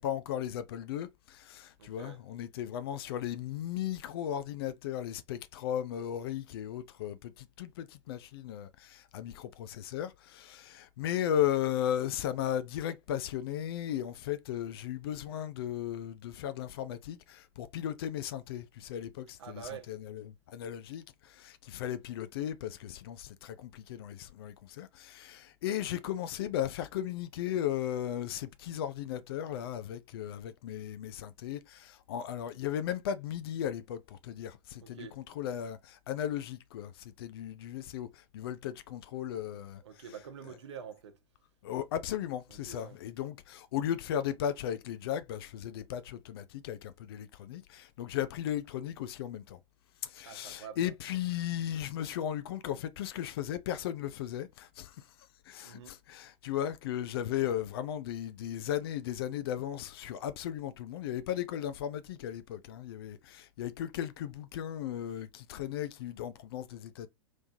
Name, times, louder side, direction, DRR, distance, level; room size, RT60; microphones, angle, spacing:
voice 1, 0.0-39.8 41.6-49.6 50.0-55.1 55.5-67.1, left 10 dB, 45° left, 0.6 m, -36 dB
voice 2, 1.8-2.3 19.4-20.0 34.8-35.2 39.8-41.2 42.4-43.0 50.2-50.9 55.6-56.0, right 7 dB, 60° right, 1.0 m, -47 dB
3.4 x 3.2 x 2.6 m
figure-of-eight pair, 100°, 17 cm